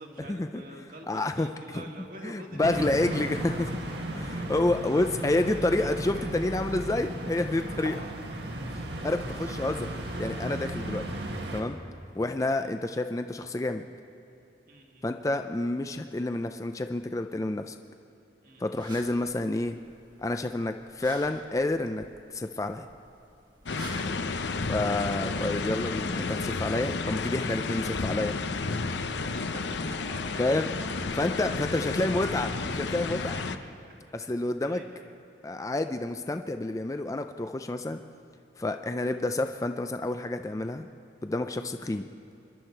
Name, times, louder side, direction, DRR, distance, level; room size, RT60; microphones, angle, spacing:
voice 1, 0.0-3.3 3.6-4.4 4.8-6.3 7.8-9.0 12.6-12.8 14.7-15.1 18.4-18.8 23.8-24.2 29.3-30.2 31.5-32.1 33.3-34.3 34.6-35.2 36.5-36.6, right 1 dB, 50° right, 1 dB, 1.8 m, -47 dB
voice 2, 1.1-1.8 2.2-3.7 4.1-8.0 9.0-9.9 10.2-11.0 11.5-11.8 12.1-13.8 15.0-17.8 18.6-19.7 20.2-22.0 22.3-22.9 24.7-28.4 30.4-30.7 31.2-33.4 34.1-34.8 35.4-38.0 38.6-40.9 41.2-42.1, left 2 dB, 20° left, 7 dB, 0.4 m, -29 dB
sound 1, 2.6-11.6, right 1 dB, 75° right, 1.6 m, -35 dB
sound 2, 18.7-25.5, right 2 dB, 25° right, 1.2 m, -50 dB
sound 3, 23.7-33.6, left 4 dB, 85° left, 0.7 m, -31 dB
25.0 x 11.5 x 4.5 m, 2.8 s
head